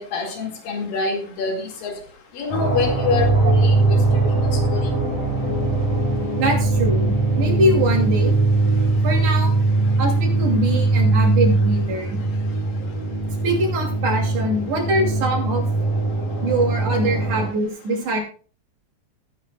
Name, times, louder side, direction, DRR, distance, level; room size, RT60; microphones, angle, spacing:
voice 1, 0.0-1.9 2.3-4.0 4.7-4.8, left 4 dB, 80° left, 2 dB, 3.9 m, -26 dB
sound 1, 2.5-17.5, right 2 dB, 10° left, 3.1 m, -21 dB
sound 2, 2.6-12.3, right 2 dB, 80° right, 4.3 m, -28 dB
voice 2, 6.4-8.4 9.0-9.5 10.0-12.2 13.4-15.6 16.4-18.2, right 1 dB, 60° right, 0 dB, 4.0 m, -23 dB
17.5 x 9.7 x 2.3 m, 0.39 s
omnidirectional pair, 4.0 m